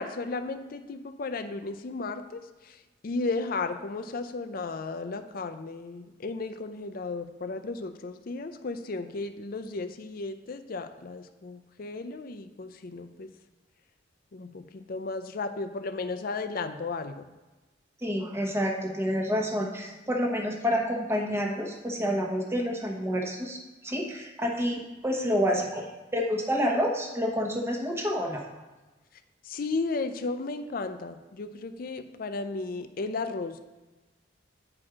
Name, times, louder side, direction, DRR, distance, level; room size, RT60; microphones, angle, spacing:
voice 1, 0.0-13.3 14.3-17.3 29.4-33.6, left 3 dB, 50° left, 8 dB, 0.5 m, -34 dB
voice 2, 18.0-25.9 26.1-28.4, equal, 15° right, 1 dB, 1.0 m, -28 dB
8.7 x 4.4 x 4.9 m, 1.2 s
head